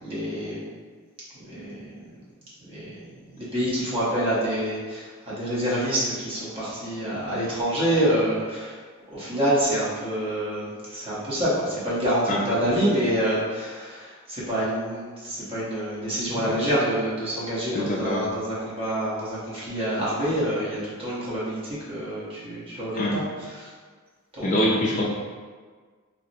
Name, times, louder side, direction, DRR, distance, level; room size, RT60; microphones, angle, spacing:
voice 1, 0.0-0.7 1.3-2.0 2.6-8.7 9.1-23.2 23.5-23.7 24.3-24.5, equal, 25° right, -9 dB, 0.9 m, -27 dB
voice 2, 17.7-18.3 23.0-23.2 24.4-25.0, left 1 dB, 35° left, -3 dB, 0.4 m, -24 dB
2.8 x 2.0 x 4.0 m, 1.5 s
head